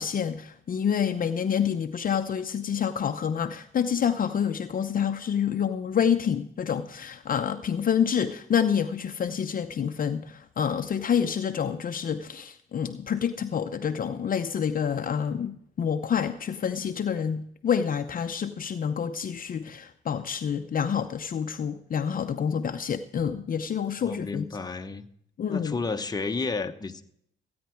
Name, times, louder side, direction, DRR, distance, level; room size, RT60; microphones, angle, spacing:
voice 1, 0.0-24.5 25.4-25.8, left 7 dB, 45° left, 8 dB, 0.7 m, -28 dB
voice 2, 24.0-25.1 25.5-27.0, left 4 dB, 20° left, 6 dB, 1.0 m, -31 dB
15.0 x 9.5 x 4.5 m, 0.70 s
cardioid pair, 90°, 20 cm